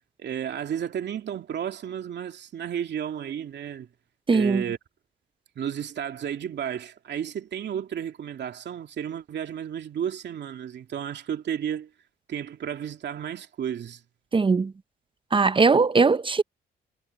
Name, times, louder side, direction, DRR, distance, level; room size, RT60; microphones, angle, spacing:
voice 1, 0.2-3.9 4.3-4.8 5.6-11.9 12.3-14.0, right 9 dB, 60° right, 2.6 m, -32 dB
voice 2, 4.3-4.6 14.3-14.7 15.3-16.4, right 4 dB, 25° right, 0.7 m, -20 dB
cardioid pair, 90°, 20 cm